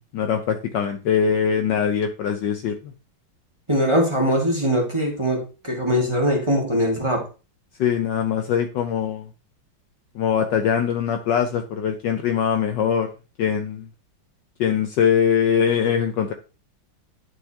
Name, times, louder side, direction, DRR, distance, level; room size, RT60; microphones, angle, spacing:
voice 1, 0.0-2.9 7.8-9.3 10.1-13.1 13.4-13.9 14.6-16.3, left 7 dB, 70° left, 6 dB, 1.2 m, -22 dB
voice 2, 3.7-7.2, equal, 15° right, -2 dB, 1.6 m, -21 dB
11.0 x 4.7 x 2.8 m, 0.33 s
omnidirectional pair, 2.3 m